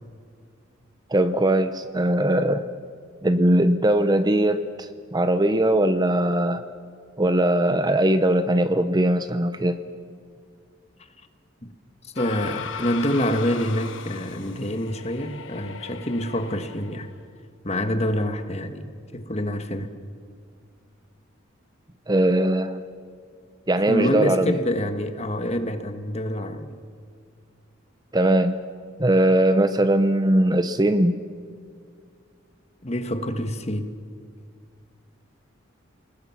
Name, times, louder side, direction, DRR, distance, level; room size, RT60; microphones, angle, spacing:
voice 1, 1.1-2.6 3.2-6.6 7.2-9.8 22.1-22.8 23.7-24.5 28.1-28.6 29.0-31.2, right 1 dB, 20° right, 11 dB, 0.7 m, -20 dB
voice 2, 12.0-17.1 17.6-18.9 19.1-19.9 23.9-26.8 32.8-33.9, equal, 35° left, 8 dB, 1.4 m, -26 dB
sound 1, 12.2-17.2, left 6 dB, 75° left, 1.3 m, -38 dB
28.5 x 19.5 x 5.9 m, 2.2 s
head